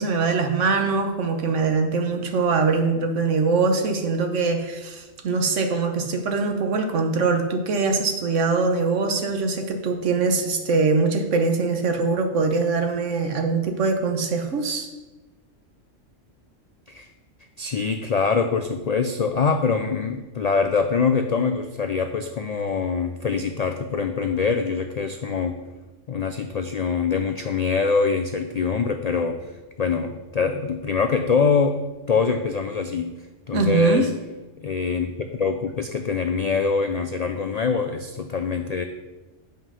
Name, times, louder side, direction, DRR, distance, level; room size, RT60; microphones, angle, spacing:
voice 1, 0.0-14.9 33.5-34.1, right 4 dB, 70° right, 5 dB, 1.3 m, -22 dB
voice 2, 17.6-25.6 26.1-29.5 29.8-31.8 32.1-33.1 33.5-34.1 34.6-38.8, left 5 dB, 90° left, 6 dB, 0.3 m, -24 dB
7.5 x 5.4 x 5.6 m, 1.2 s
omnidirectional pair, 1.3 m